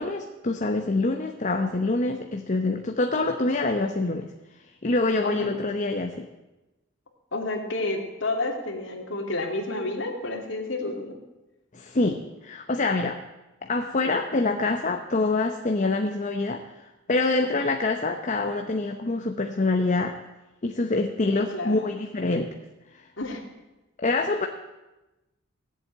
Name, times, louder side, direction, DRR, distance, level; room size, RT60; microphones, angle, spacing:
voice 1, 0.0-4.3 4.8-6.3 11.7-13.2 13.6-16.6 17.1-20.2 20.6-22.5 22.9-23.0 24.0-24.5, left 2 dB, 40° left, 4 dB, 0.9 m, -25 dB
voice 2, 5.2-5.6 7.3-11.1 14.0-14.2 17.4-17.6 21.3-21.9 23.2-23.4, left 2 dB, 65° left, 2 dB, 2.5 m, -30 dB
16.5 x 7.8 x 9.1 m, 1.0 s
head